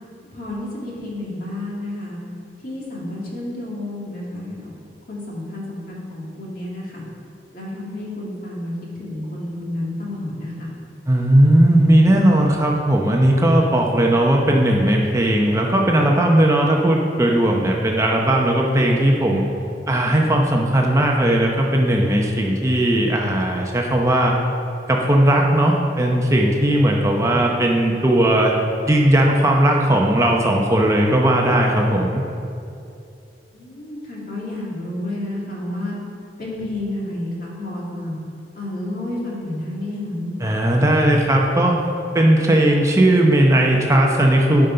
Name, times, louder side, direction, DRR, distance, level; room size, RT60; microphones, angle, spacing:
voice 1, 0.3-2.2 2.6-4.7 5.1-7.0 7.5-10.7 33.5-36.0 36.4-38.1 38.5-40.3, left 1 dB, 50° left, -5 dB, 2.4 m, -30 dB
voice 2, 11.1-19.4 19.9-24.4 24.9-28.6 28.9-32.2 40.4-41.8 42.1-44.7, right 1 dB, 15° right, 0 dB, 0.7 m, -17 dB
11.5 x 5.2 x 5.7 m, 2.6 s
head